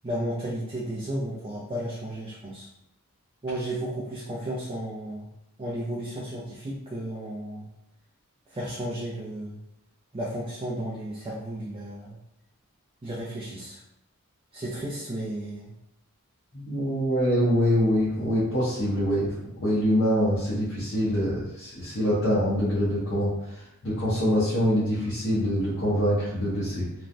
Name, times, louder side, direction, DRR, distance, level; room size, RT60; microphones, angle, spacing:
voice 1, 0.0-2.7 3.4-5.3 5.6-7.7 8.5-9.6 10.1-12.2 13.0-13.8 14.5-15.7, right 1 dB, 25° right, -6 dB, 0.4 m, -33 dB
voice 2, 16.5-19.3 19.6-26.8, equal, 55° left, -10 dB, 0.8 m, -25 dB
3.1 x 2.2 x 2.5 m, 0.81 s
head